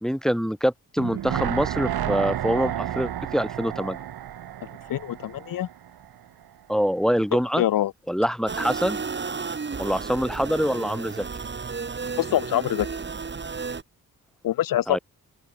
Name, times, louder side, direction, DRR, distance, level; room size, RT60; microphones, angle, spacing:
voice 1, 0.0-4.0 6.7-7.6 8.1-9.0 9.8-11.3 14.9-15.0, equal, ahead, 0.6 m, -25 dB
sound 1, 1.0-6.1 6.4-6.5, right 11 dB, 80° right, 1.2 m, -31 dB
voice 2, 4.9-5.7 7.6-7.9 12.2-12.9 14.4-15.0, left 12 dB, 65° left, 0.5 m, -24 dB
sound 2, 8.5-13.8, right 5 dB, 30° right, 1.8 m, -33 dB
open air
wide cardioid pair, 130°, 36 cm